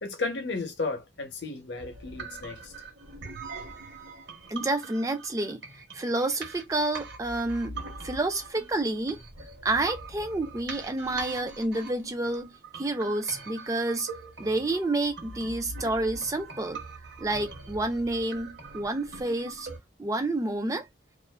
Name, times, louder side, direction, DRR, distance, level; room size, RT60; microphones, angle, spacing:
voice 1, 0.0-2.7 3.2-3.7, left 3 dB, 65° left, 0.7 m, -34 dB
sound 1, 1.8-19.8, right 3 dB, 65° right, 0.9 m, -43 dB
voice 2, 4.5-5.6 5.9-9.2 9.6-14.1 14.4-16.8 17.2-19.7 20.0-20.9, right 2 dB, 15° right, 0.3 m, -29 dB
2.4 x 2.3 x 2.2 m
head